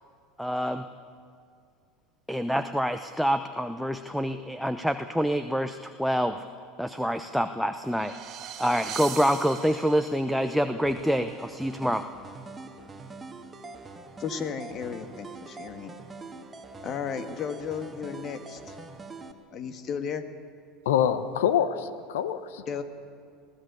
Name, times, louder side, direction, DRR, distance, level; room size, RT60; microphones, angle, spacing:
voice 1, 0.4-0.8 2.3-6.5 6.8-8.1 8.6-12.1, equal, ahead, 8 dB, 0.8 m, -26 dB
sound 1, 7.6-10.3, right 10 dB, 45° right, 1.6 m, -40 dB
sound 2, 10.8-19.3, right 3 dB, 20° right, 1.8 m, -44 dB
voice 2, 14.2-15.9 16.8-18.8 19.5-20.2 22.7-22.8, left 7 dB, 45° left, 8 dB, 1.7 m, -34 dB
voice 3, 20.8-22.8, left 9 dB, 75° left, 12 dB, 1.1 m, -26 dB
20.5 x 15.0 x 8.3 m, 2.2 s
hypercardioid pair, 80°, 0 cm